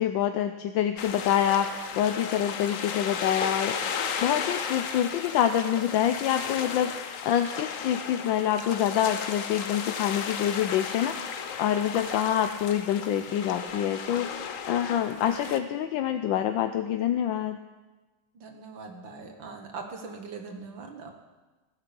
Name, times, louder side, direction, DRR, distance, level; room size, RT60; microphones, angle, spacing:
voice 1, 0.0-3.9 4.2-17.6, left 10 dB, 75° left, 7 dB, 1.3 m, -26 dB
sound 1, 1.0-15.6, left 7 dB, 55° left, 0.9 m, -35 dB
voice 2, 18.4-21.1, right 4 dB, 70° right, 4 dB, 2.1 m, -41 dB
16.0 x 9.0 x 6.9 m, 1.2 s
omnidirectional pair, 2.2 m